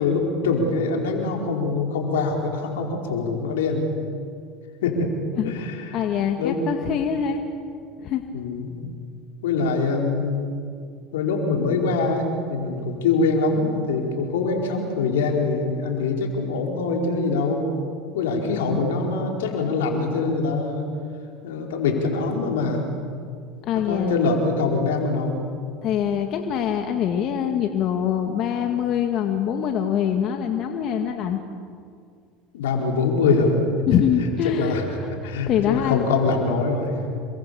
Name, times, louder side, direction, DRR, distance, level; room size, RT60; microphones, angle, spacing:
voice 1, 0.0-3.9 4.8-5.1 5.4-6.0 6.4-6.6 8.3-8.9 9.4-10.5 11.1-17.7 18.1-20.9 21.4-22.9 23.7-25.4 32.5-33.6 33.9-34.0 34.4-36.9, left 4 dB, 85° left, 1 dB, 4.6 m, -24 dB
voice 2, 5.9-7.4 8.0-8.2 23.6-24.1 25.8-31.4 33.9-34.8 35.2-36.0, left 8 dB, 55° left, 5 dB, 2.0 m, -24 dB
28.5 x 23.5 x 7.0 m, 2.2 s
hypercardioid pair, 90°, 0 cm